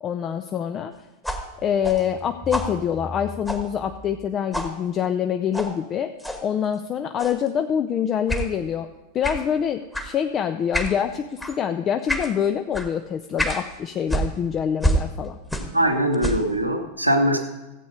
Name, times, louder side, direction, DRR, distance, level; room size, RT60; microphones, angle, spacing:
voice 1, 0.0-0.9 1.6-6.1 6.4-8.9 9.1-15.4, left 8 dB, 30° left, 7 dB, 0.5 m, -25 dB
sound 1, 1.2-4.3 4.5-4.8 5.5-5.7 6.2-6.4 7.2-7.5 8.3-8.5 9.2-9.5 9.9-10.1 10.7-11.0 11.4-11.6 12.1-12.3 12.7-12.9 13.4-13.6 14.1-15.8 16.1-16.5, equal, 5° left, 1.4 m, -28 dB
voice 2, 15.7-17.4, right 1 dB, 85° right, 4 dB, 1.2 m, -21 dB
14.5 x 8.3 x 5.1 m, 1.1 s
figure-of-eight pair, 90°, 0 cm